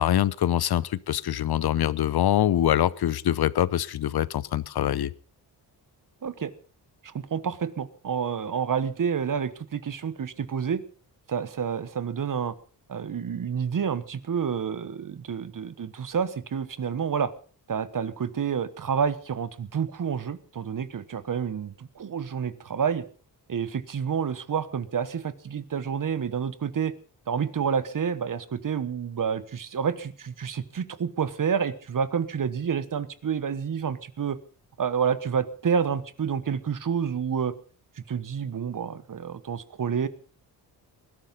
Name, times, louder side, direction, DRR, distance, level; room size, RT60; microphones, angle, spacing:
voice 1, 0.0-5.1, left 11 dB, 70° left, 20 dB, 0.8 m, -24 dB
voice 2, 6.2-6.5 7.0-10.8 11.3-12.5 12.9-17.3 17.7-23.0 23.5-26.9 27.3-34.4 34.8-37.5 38.1-40.1, right 7 dB, 50° right, 15 dB, 1.2 m, -29 dB
20.0 x 12.0 x 5.4 m, 0.40 s
wide cardioid pair, 105°, 40 cm